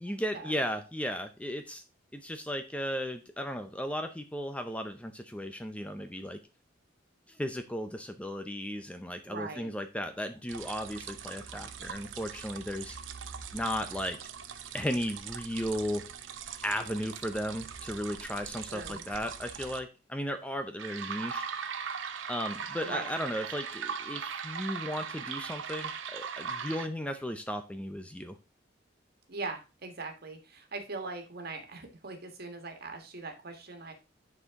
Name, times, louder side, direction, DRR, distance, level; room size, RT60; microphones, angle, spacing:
voice 1, 0.0-1.8 2.1-6.4 7.3-13.0 13.5-14.2 14.7-16.0 16.6-21.5 22.3-28.4, equal, 5° left, 8 dB, 0.5 m, -35 dB
voice 2, 9.3-9.7 18.7-19.0 22.8-23.1 29.3-33.9, right 3 dB, 55° right, 4 dB, 1.6 m, -40 dB
sound 1, 10.5-19.8 20.8-26.9, right 7 dB, 70° right, 0.7 m, -40 dB
9.7 x 4.4 x 3.6 m, 0.30 s
head